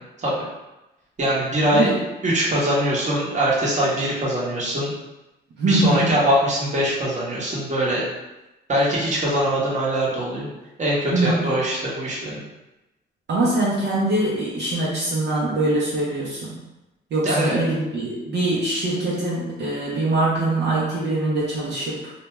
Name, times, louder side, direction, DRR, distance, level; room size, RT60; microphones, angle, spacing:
voice 1, 1.2-1.9 2.2-4.9 5.6-8.0 8.7-10.5 10.8-12.4 17.2-17.6, equal, 35° right, -6 dB, 1.0 m, -22 dB
voice 2, 1.7-2.0 5.6-6.2 11.1-11.5 13.3-16.5 17.1-22.1, right 2 dB, 60° right, -7 dB, 0.8 m, -23 dB
2.5 x 2.2 x 3.1 m, 0.99 s
cardioid pair, 90°, 20 cm